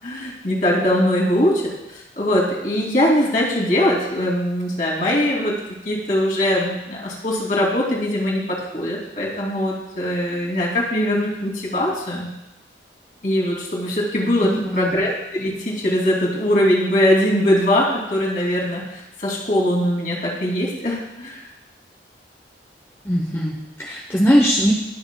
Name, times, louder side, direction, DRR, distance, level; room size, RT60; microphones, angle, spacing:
voice 1, 0.0-5.5 5.8-12.3 13.2-21.4, left 1 dB, 45° left, -4 dB, 2.7 m, -21 dB
voice 2, 14.4-14.9 23.0-24.8, equal, 15° left, -2 dB, 0.8 m, -20 dB
19.0 x 6.6 x 2.3 m, 0.91 s
head